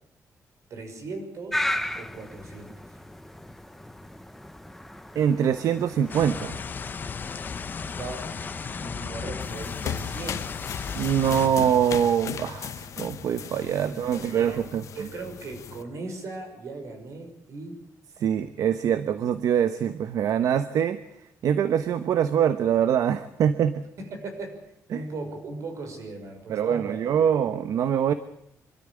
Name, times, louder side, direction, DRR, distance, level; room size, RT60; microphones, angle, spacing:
voice 1, 0.7-2.7 8.0-8.3 8.8-11.0 13.8-14.7 15.0-17.8 24.0-24.6 24.9-27.2, right 3 dB, 55° right, 6 dB, 6.2 m, -38 dB
sound 1, 1.5-8.9, left 1 dB, 5° left, 0.8 m, -36 dB
voice 2, 5.1-6.6 10.9-14.8 18.2-21.0 21.4-23.8 24.9-25.0 26.5-28.1, right 8 dB, 75° right, 11 dB, 1.1 m, -24 dB
sound 2, 6.1-11.5, left 6 dB, 35° left, 0.9 m, -35 dB
sound 3, 9.4-15.8, left 8 dB, 65° left, 1.3 m, -37 dB
25.5 x 13.5 x 9.9 m, 0.75 s
wide cardioid pair, 170°, 6 cm